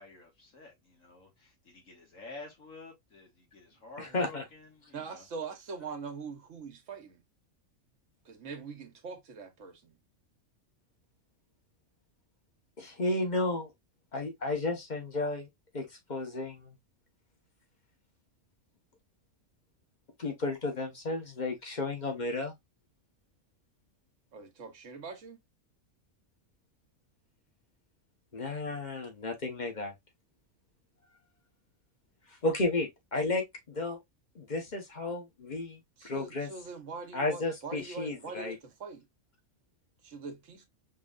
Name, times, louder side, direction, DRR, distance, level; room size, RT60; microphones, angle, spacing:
voice 1, 0.0-5.2, left 2 dB, 90° left, 2.3 m, -50 dB
voice 2, 4.0-4.4 12.8-13.7 14.1-15.5 15.7-16.8 20.2-22.5 28.3-29.9 32.4-34.0 34.3-36.5 37.1-38.6, left 2 dB, 35° left, 1.3 m, -33 dB
voice 3, 4.9-7.2 8.2-10.0 24.3-25.4 36.0-39.1 40.0-40.7, right 5 dB, 70° right, 1.4 m, -43 dB
5.3 x 3.2 x 2.4 m
omnidirectional pair, 1.3 m